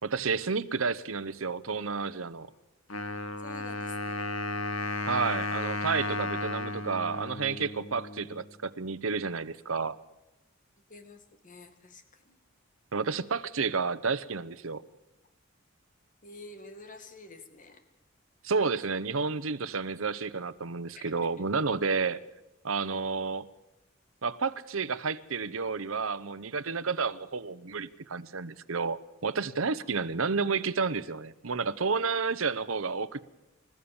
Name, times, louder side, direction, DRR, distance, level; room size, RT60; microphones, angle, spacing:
voice 1, 0.0-2.5 5.1-10.0 12.9-14.8 18.4-22.2 22.6-23.4 24.2-33.2, right 4 dB, 80° right, 14 dB, 0.9 m, -31 dB
Wind instrument woodwind instrument, 2.9-8.5, left 2 dB, 85° left, 1.5 m, -34 dB
voice 2, 3.4-4.3 9.4-9.5 10.9-12.4 16.2-17.8 21.0-21.1 29.7-29.8, left 2 dB, 40° left, 8 dB, 2.3 m, -49 dB
30.0 x 14.5 x 7.2 m, 0.97 s
head